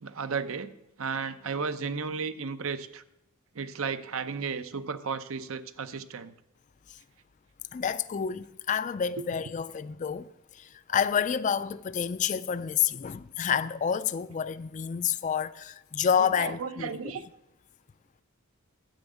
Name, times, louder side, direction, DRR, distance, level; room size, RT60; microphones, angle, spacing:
voice 1, 0.0-3.0 3.5-6.4 9.2-9.3 16.2-17.2, right 5 dB, 75° right, 0.7 m, -34 dB
voice 2, 7.7-10.3 10.5-17.1, left 7 dB, 35° left, 0.3 m, -29 dB
10.5 x 6.3 x 7.9 m
head